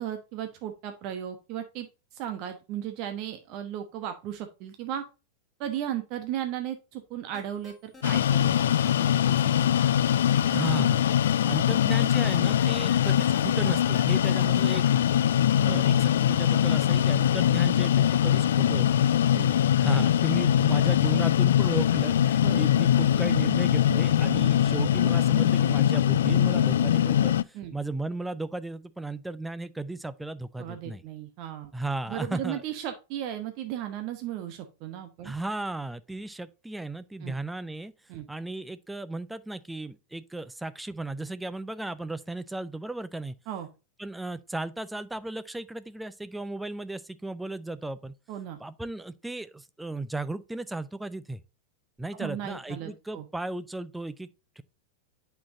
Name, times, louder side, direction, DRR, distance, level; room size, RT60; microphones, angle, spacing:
voice 1, 0.0-5.0 5.6-8.5 8.8-9.8 15.6-15.8 19.3-19.5 22.4-22.6 27.5-27.7 30.6-31.7 32.1-35.3 37.2-37.3 38.1-38.3 43.5-43.7 48.3-48.6 52.1-53.2, right 10 dB, 40° right, 1.0 m, -36 dB
sound 1, 7.3-14.9, left 2 dB, 15° left, 2.1 m, -48 dB
sound 2, 8.0-27.4, left 10 dB, 60° left, 0.3 m, -22 dB
voice 2, 10.5-11.0 11.4-15.1 15.6-19.1 19.8-31.0 31.7-32.6 35.2-37.9 38.3-43.4 44.0-48.1 48.6-51.4 52.0-54.3 54.6-54.7, right 2 dB, 5° right, 0.6 m, -35 dB
8.7 x 5.8 x 2.6 m
figure-of-eight pair, 90°, 0 cm